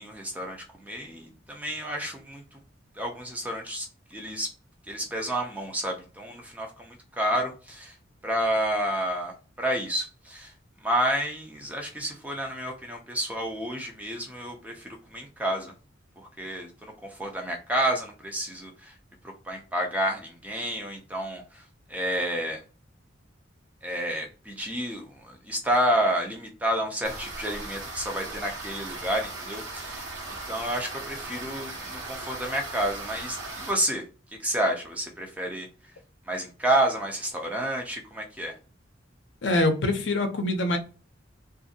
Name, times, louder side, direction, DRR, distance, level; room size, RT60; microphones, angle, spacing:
voice 1, 0.0-2.6 3.0-4.5 4.9-8.0 8.2-10.5 10.8-15.7 16.2-18.9 19.2-21.6 21.9-22.6 23.8-30.1 30.5-34.0 34.4-35.7 36.3-38.6, right 1 dB, 10° right, 2 dB, 0.4 m, -30 dB
sound 1, 27.0-33.7, right 2 dB, 70° right, 1.0 m, -38 dB
voice 2, 39.4-40.8, left 2 dB, 65° left, 6 dB, 0.6 m, -24 dB
2.6 x 2.5 x 2.7 m, 0.34 s
head